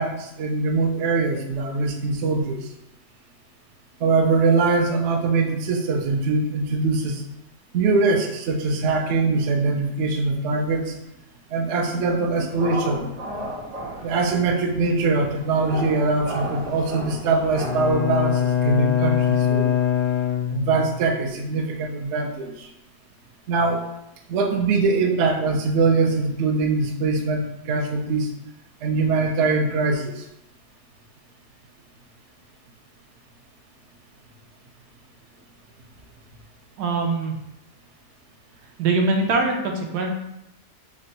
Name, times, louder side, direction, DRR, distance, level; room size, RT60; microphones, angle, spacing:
voice 1, 0.0-2.7 4.0-7.2 7.7-11.0 11.5-13.1 14.0-19.7 20.5-22.7 23.5-23.9 24.3-28.3 28.8-30.2, right 3 dB, 70° right, 4 dB, 0.6 m, -22 dB
sound 1, 12.5-17.9, right 1 dB, 50° right, 1.1 m, -34 dB
Bowed string instrument, 17.6-21.1, left 9 dB, 85° left, 1.2 m, -23 dB
voice 2, 36.8-37.4 38.8-40.1, right 3 dB, 90° right, 2 dB, 1.2 m, -22 dB
3.5 x 2.2 x 3.9 m, 0.84 s
omnidirectional pair, 1.7 m